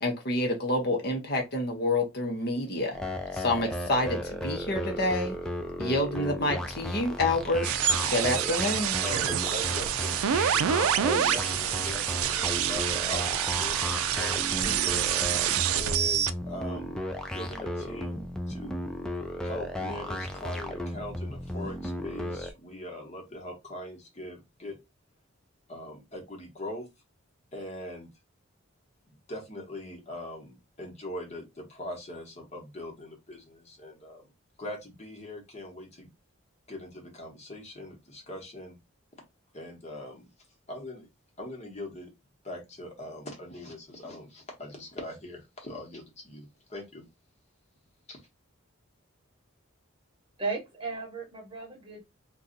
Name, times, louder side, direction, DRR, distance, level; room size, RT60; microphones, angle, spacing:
voice 1, 0.0-3.0 3.3-5.4 5.8-7.7 8.1-9.0, left 1 dB, 45° left, 0.7 m, -28 dB
sound 1, 2.9-22.5, left 1 dB, 5° left, 0.3 m, -35 dB
sound 2, 7.6-16.3, right 9 dB, 85° right, 0.4 m, -27 dB
voice 2, 9.0-15.0 15.7-17.0 17.3-18.8 19.4-24.8 25.7-26.9 27.5-28.1 29.1-34.3 34.6-36.1 36.7-38.8 39.5-40.3 40.7-41.1 41.4-42.1 42.4-47.1 48.1-48.2, left 1 dB, 30° left, 1.0 m, -41 dB
voice 3, 50.4-52.0, right 3 dB, 25° right, 0.9 m, -35 dB
2.7 x 2.3 x 3.8 m
head